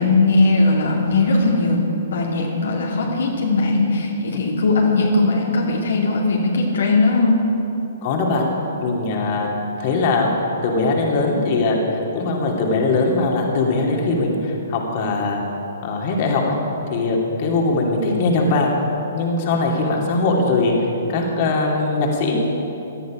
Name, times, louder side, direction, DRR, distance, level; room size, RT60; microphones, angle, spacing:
voice 1, 0.0-7.5, left 3 dB, 60° left, -2 dB, 2.4 m, -19 dB
voice 2, 8.0-8.5 8.8-9.5 9.8-10.3 10.6-15.4 15.8-16.6 16.9-18.7 19.1-22.4, left 3 dB, 40° left, -1 dB, 2.7 m, -20 dB
18.5 x 12.5 x 5.1 m, 3.0 s
figure-of-eight pair, 120°, 0 cm